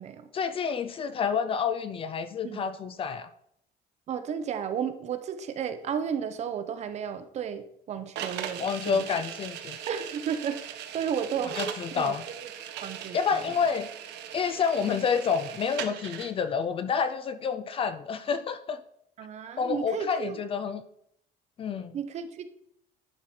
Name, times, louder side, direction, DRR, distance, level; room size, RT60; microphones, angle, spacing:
voice 1, 0.3-3.3 8.6-9.8 11.6-12.2 13.1-13.9 14.3-18.8 19.6-20.8 21.6-21.9, left 6 dB, 30° left, 12 dB, 0.4 m, -29 dB
voice 2, 4.1-9.2 9.9-11.6 11.9-12.4 12.8-13.5 19.2-20.4 21.9-22.5, right 8 dB, 40° right, 10 dB, 0.7 m, -33 dB
sound 1, 8.2-16.3, right 9 dB, 70° right, 1.0 m, -39 dB
10.5 x 4.8 x 4.3 m, 0.72 s
cardioid pair, 175°, 18 cm